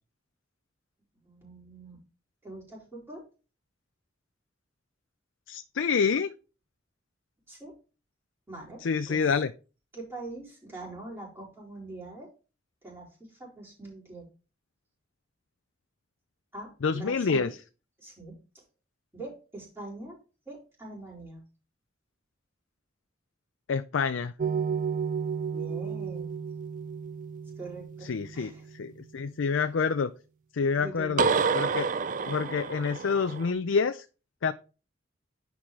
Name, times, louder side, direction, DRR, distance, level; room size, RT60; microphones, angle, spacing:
voice 1, 1.1-2.0 2.4-3.3 7.5-7.7 8.5-9.3 9.9-12.3 12.8-14.3 16.5-17.5 18.0-18.6 19.1-20.2 20.5-21.4 25.5-26.3 27.6-28.7 29.5-29.6 30.7-31.5, right 2 dB, 15° right, -6 dB, 4.3 m, -43 dB
voice 2, 5.5-6.3 8.8-9.5 16.8-17.5 23.7-24.3 28.1-28.5 28.8-30.1 30.5-31.3 31.5-31.9 32.3-34.0 34.4-34.5, left 5 dB, 85° left, 11 dB, 0.5 m, -27 dB
sound 1, 24.4-28.7 31.2-33.5, right 5 dB, 45° right, 0.4 m, -30 dB
10.0 x 4.8 x 3.7 m, 0.34 s
head